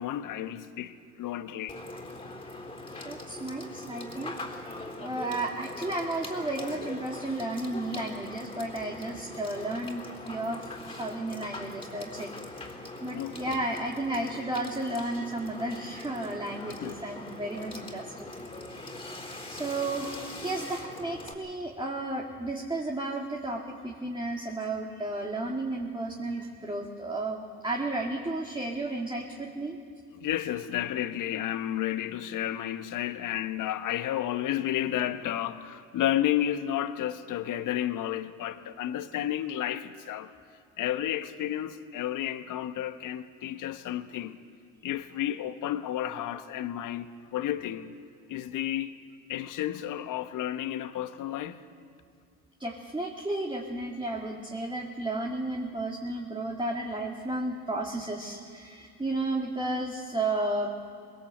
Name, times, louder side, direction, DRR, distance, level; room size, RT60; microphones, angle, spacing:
voice 1, 0.0-1.8 13.1-13.6 16.7-17.0 30.2-40.3 40.8-44.4 44.8-47.1 47.3-47.9 48.3-48.9 49.3-51.6, left 12 dB, 55° left, 1.2 m, -32 dB
Water / Water tap faucet / Sink (filling or washing), 1.7-21.3, left 2 dB, 15° left, 3.7 m, -42 dB
voice 2, 3.0-4.4 5.0-10.6 10.9-12.7 13.0-18.3 19.5-29.8 52.6-60.7, right 2 dB, 10° right, 2.3 m, -33 dB
20.0 x 18.5 x 8.0 m
hypercardioid pair, 70°, 38 cm